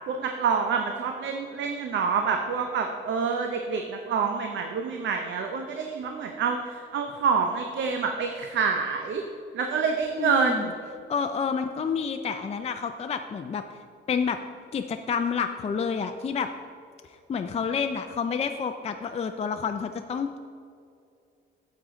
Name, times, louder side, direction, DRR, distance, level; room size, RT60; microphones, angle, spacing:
voice 1, 0.1-9.2 9.5-10.7, right 5 dB, 70° right, 4 dB, 0.7 m, -27 dB
voice 2, 10.2-10.7 11.1-13.6 14.1-14.4 14.7-16.5 17.3-20.4, left 6 dB, 30° left, 6 dB, 0.4 m, -29 dB
9.2 x 7.5 x 3.8 m, 2.5 s
cardioid pair, 90°, 20 cm